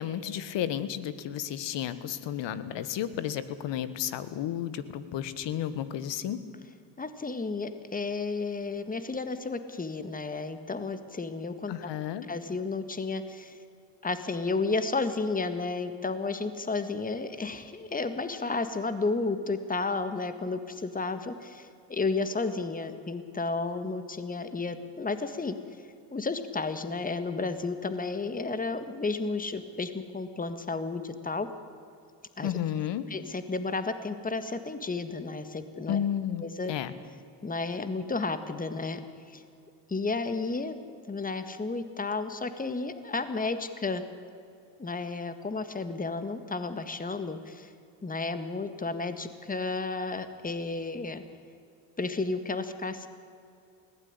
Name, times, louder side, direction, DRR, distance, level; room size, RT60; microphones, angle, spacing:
voice 1, 0.0-6.4 11.7-12.2 32.4-33.0 35.9-36.4 36.7-36.9, left 10 dB, 65° left, 14 dB, 1.6 m, -32 dB
voice 2, 7.0-11.9 12.3-13.6 14.0-25.6 26.1-31.5 32.4-32.5 33.1-36.0 36.4-36.7 37.4-39.0 39.3-39.4 39.9-40.7 41.1-44.0 44.8-47.7 48.0-51.2 52.0-53.1, left 3 dB, 20° left, 10 dB, 1.8 m, -32 dB
20.5 x 16.5 x 9.7 m, 2.5 s
supercardioid pair, 85°, 46 cm